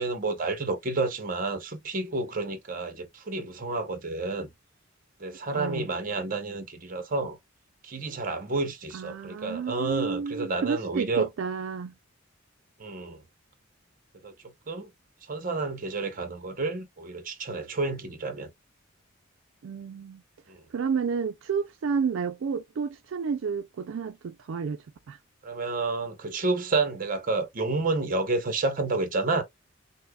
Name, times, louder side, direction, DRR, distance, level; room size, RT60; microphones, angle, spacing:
voice 1, 0.0-4.5 5.2-7.4 7.8-11.3 12.8-13.2 14.2-14.3 14.7-14.9 15.3-18.5 20.5-20.6 25.4-29.4, right 3 dB, 45° right, 0.8 m, -30 dB
voice 2, 5.5-5.9 8.9-11.9 19.6-20.2 20.7-25.2, right 6 dB, 80° right, 0.4 m, -31 dB
5.4 x 2.1 x 2.3 m
head